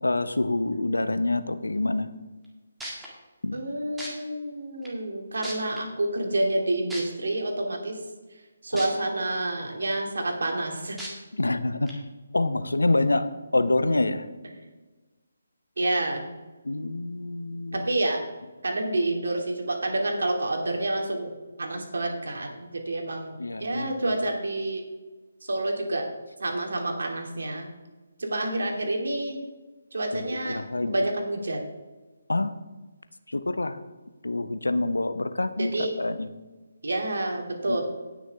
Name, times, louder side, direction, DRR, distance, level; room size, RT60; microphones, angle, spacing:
voice 1, 0.0-2.1 3.4-3.6 8.7-8.8 11.4-11.9 12.3-14.2 16.6-17.9 23.4-24.1 30.1-30.9 32.3-32.5 33.3-33.8 34.2-36.3 37.7-37.8, left 2 dB, 80° left, 11 dB, 0.8 m, -26 dB
sound 1, 2.4-2.5 2.8-3.1 4.0-4.1 4.8-4.9 5.4-5.8 6.9-7.0 8.8-8.9 9.4-9.5 11.0-11.1 11.9-12.0, right 1 dB, 5° right, 2.0 m, -35 dB
voice 2, 3.5-8.0 8.6-11.0 15.8-16.3 17.7-18.2 18.6-21.3 21.6-24.8 25.4-26.1 26.4-27.7 28.2-29.4 29.9-30.6 30.9-31.7 35.6-35.9 36.8-37.8, right 2 dB, 70° right, 1 dB, 2.4 m, -28 dB
18.0 x 6.3 x 3.5 m, 1.2 s
figure-of-eight pair, 150°, 0 cm